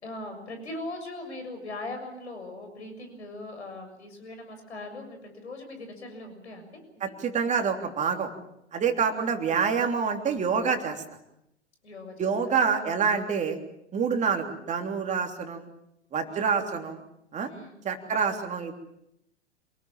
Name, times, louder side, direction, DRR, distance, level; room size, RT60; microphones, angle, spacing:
voice 1, 0.0-7.1 9.0-9.3 11.8-12.5 16.3-16.5 17.5-17.8 18.1-18.3, left 2 dB, 75° left, 6 dB, 6.9 m, -40 dB
voice 2, 7.0-8.3 8.7-11.0 12.2-13.6 13.9-15.7 16.1-17.0 17.3-17.5 17.8-18.7, right 6 dB, 20° right, 4 dB, 3.3 m, -27 dB
27.5 x 19.5 x 7.5 m, 0.81 s
figure-of-eight pair, 100°, 34 cm